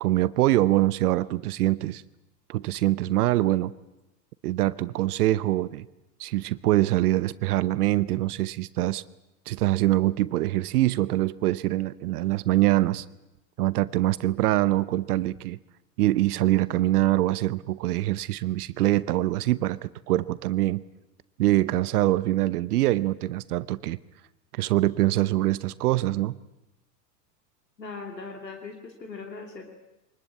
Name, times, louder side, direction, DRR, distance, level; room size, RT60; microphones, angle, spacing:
voice 1, 0.0-2.0 2.5-3.7 4.4-5.9 6.2-9.0 9.5-13.0 13.6-15.6 16.0-20.8 21.4-24.0 24.5-26.4, right 16 dB, 65° right, 0.9 m, -24 dB
voice 2, 27.8-29.7, left 4 dB, 90° left, 3.0 m, -39 dB
24.0 x 20.0 x 8.5 m
hypercardioid pair, 90°, 50 cm